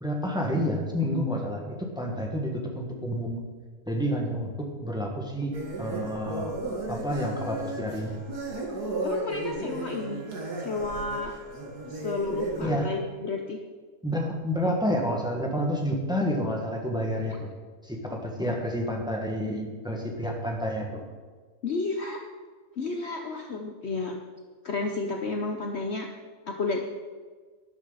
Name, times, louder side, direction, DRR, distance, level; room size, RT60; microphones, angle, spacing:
voice 1, 0.0-3.4 3.9-4.5 4.8-6.5 6.9-8.2 12.6-12.9 14.0-17.5 17.8-20.9, equal, 5° right, 0 dB, 1.7 m, -29 dB
sound 1, 5.5-12.7, right 2 dB, 85° right, 2.4 m, -34 dB
voice 2, 9.0-10.2 10.6-11.3 11.9-13.6 21.6-22.2 22.8-24.2 24.6-26.1 26.5-26.8, left 3 dB, 50° left, 3 dB, 1.0 m, -31 dB
12.0 x 12.0 x 4.1 m, 1.5 s
omnidirectional pair, 1.6 m